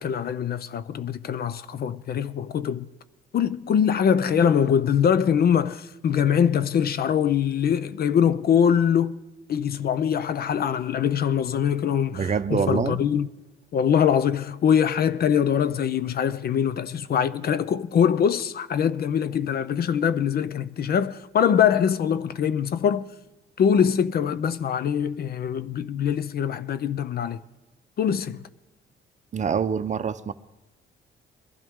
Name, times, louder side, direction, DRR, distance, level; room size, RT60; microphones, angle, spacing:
voice 1, 0.0-2.9 3.3-9.2 9.5-13.3 13.7-23.1 23.6-27.4 28.0-28.4, left 8 dB, 50° left, 0.5 m, -23 dB
voice 2, 12.1-13.0 29.3-30.3, right 6 dB, 40° right, 0.6 m, -25 dB
22.0 x 12.5 x 3.6 m
cardioid pair, 90°, 20 cm